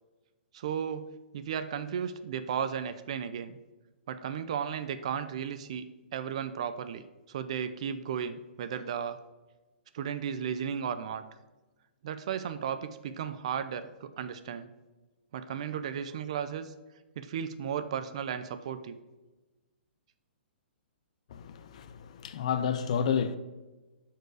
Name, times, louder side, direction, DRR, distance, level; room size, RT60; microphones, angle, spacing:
voice 1, 0.5-1.1 1.3-3.6 4.1-5.8 6.1-9.2 9.9-11.2 12.0-14.7 15.3-16.7 17.2-19.0, right 8 dB, 35° right, 0.4 m, -34 dB
voice 2, 21.3-23.4, left 7 dB, 35° left, 0.4 m, -30 dB
11.5 x 4.6 x 4.7 m
hypercardioid pair, 175°, 6 cm